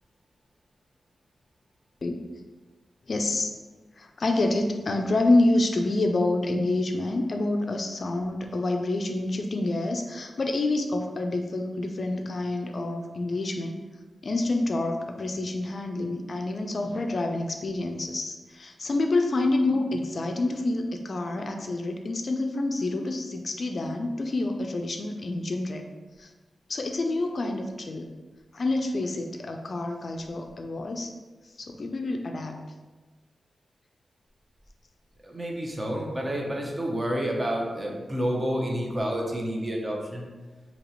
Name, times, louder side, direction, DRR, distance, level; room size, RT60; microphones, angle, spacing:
voice 1, 3.1-3.5 4.0-13.8 14.2-25.8 26.2-26.3 26.7-28.1 28.5-31.1 31.6-32.6, left 2 dB, 55° left, 4 dB, 0.3 m, -27 dB
voice 2, 35.2-40.3, equal, 25° right, -1 dB, 0.8 m, -29 dB
2.9 x 2.8 x 4.1 m, 1.3 s
cardioid pair, 80°, 0 cm